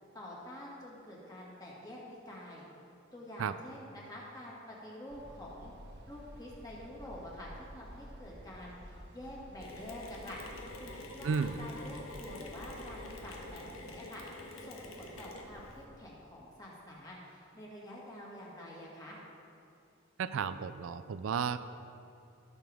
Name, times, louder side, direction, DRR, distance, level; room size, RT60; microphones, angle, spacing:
voice 1, 0.1-2.6 3.1-5.7 6.1-10.4 10.8-19.2, left 1 dB, 20° left, -5 dB, 2.0 m, -47 dB
sound 1, 5.1-13.5, equal, 55° right, 1.3 m, -52 dB
Mechanisms, 9.6-15.8, left 2 dB, 90° left, 1.3 m, -47 dB
voice 2, 11.2-11.6 20.2-21.6, right 6 dB, 75° right, 12 dB, 0.4 m, -33 dB
17.0 x 6.8 x 3.5 m, 2.7 s
head